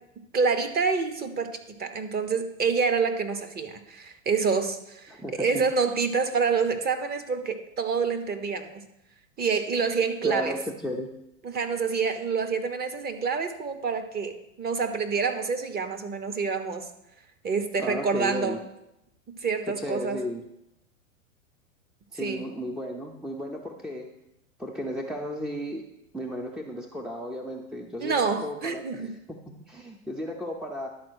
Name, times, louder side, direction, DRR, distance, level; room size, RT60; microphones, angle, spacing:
voice 1, 0.3-5.1 5.4-8.8 9.4-10.5 11.4-16.9 17.4-18.6 19.4-20.2 22.2-22.4 28.0-29.1, right 5 dB, 25° right, 8 dB, 0.9 m, -27 dB
voice 2, 5.1-5.7 10.2-11.1 17.8-18.6 19.7-20.4 22.1-24.1 24.6-25.8 26.1-29.2 29.7-30.9, equal, ahead, 2 dB, 0.5 m, -34 dB
11.0 x 4.3 x 6.3 m, 0.87 s
hypercardioid pair, 110°, 40 cm